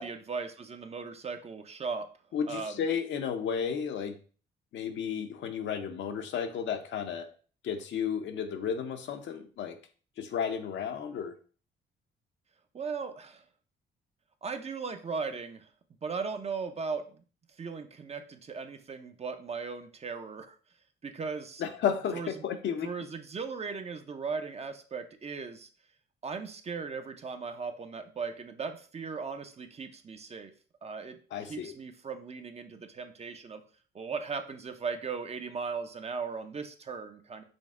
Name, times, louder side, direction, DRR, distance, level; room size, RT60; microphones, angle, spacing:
voice 1, 0.0-2.1 2.5-2.8 12.7-13.4 14.4-15.7 16.0-17.2 17.6-20.6 21.0-21.6 22.1-22.3 22.8-25.7 26.2-30.5 30.8-31.2 31.5-33.6 33.9-37.4, right 5 dB, 30° right, 8 dB, 0.5 m, -37 dB
voice 2, 2.3-4.1 4.7-7.3 7.6-9.8 10.2-11.4 21.6-22.9 31.3-31.7, left 7 dB, 65° left, 6 dB, 0.6 m, -33 dB
5.2 x 2.0 x 3.6 m, 0.39 s
cardioid pair, 90°, 20 cm